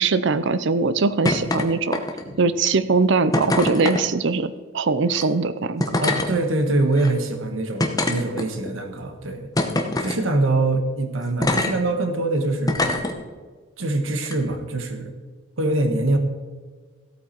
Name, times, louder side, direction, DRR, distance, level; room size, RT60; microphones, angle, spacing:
voice 1, 0.0-2.0 2.4-5.8, right 4 dB, 65° right, 14 dB, 0.6 m, -21 dB
sound 1, 1.2-1.6 1.9-2.4 3.3-4.0 5.1-5.2 5.8-6.3 7.0-7.1 7.8-8.7 9.6-10.2 11.4-11.7 12.7-13.1 14.2-14.3, left 2 dB, 20° left, 1.0 m, -23 dB
voice 2, 6.0-9.5 10.0-13.0 13.8-15.1 15.6-16.2, right 2 dB, 80° right, 7 dB, 1.3 m, -24 dB
15.0 x 8.4 x 4.5 m, 1.4 s
head